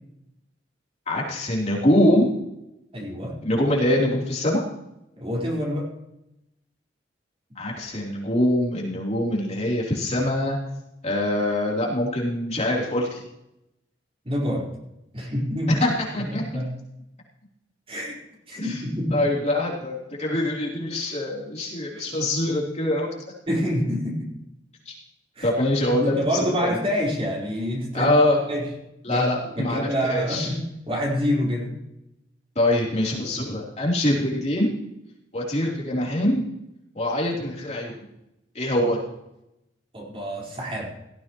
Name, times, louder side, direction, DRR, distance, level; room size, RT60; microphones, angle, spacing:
voice 1, 1.1-2.3 3.4-4.6 7.5-10.6 11.0-13.2 15.7-16.6 18.6-18.8 19.1-23.1 23.5-23.6 24.8-24.9 25.4-26.8 27.9-28.4 29.0-30.5 32.5-34.7 35.3-36.4 36.9-38.0 38.5-39.0, left 1 dB, 35° left, -3 dB, 3.4 m, -24 dB
voice 2, 2.9-3.3 5.2-5.9 14.2-14.7 15.1-15.8 16.3-16.7 17.9-18.2 18.5-19.2 23.5-24.3 25.4-25.5 26.0-28.1 28.5-28.7 29.1-29.3 29.5-30.6 30.9-31.8 39.9-40.9, equal, 30° right, -3 dB, 4.5 m, -26 dB
17.5 x 14.0 x 3.1 m, 0.86 s
head